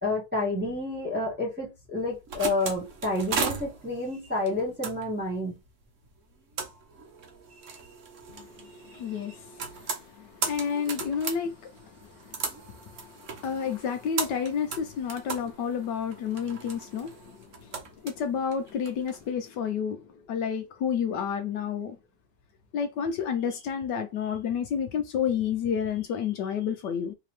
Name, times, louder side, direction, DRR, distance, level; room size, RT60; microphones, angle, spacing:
voice 1, 0.0-5.6, left 2 dB, 5° right, 1.3 m, -29 dB
sound 1, 2.0-19.2, right 5 dB, 55° right, 1.0 m, -37 dB
voice 2, 8.3-22.0 22.7-27.1, left 7 dB, 75° left, 1.2 m, -31 dB
4.1 x 2.9 x 3.2 m
omnidirectional pair, 2.0 m